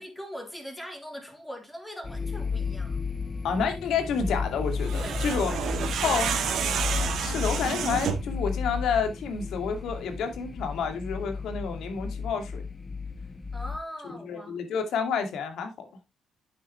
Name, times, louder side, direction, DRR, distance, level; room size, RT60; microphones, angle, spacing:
voice 1, 0.0-3.0 4.9-6.2 13.5-14.6, equal, 5° left, 3.5 m, -41 dB
sound 1, 2.0-13.8, left 5 dB, 25° left, 0.8 m, -33 dB
voice 2, 3.4-5.5 6.0-6.3 7.2-12.6 14.3-15.9, left 6 dB, 75° left, 2.5 m, -29 dB
sound 2, 4.7-8.4, right 7 dB, 70° right, 1.9 m, -30 dB
9.2 x 7.8 x 3.3 m
cardioid pair, 90°, 0 cm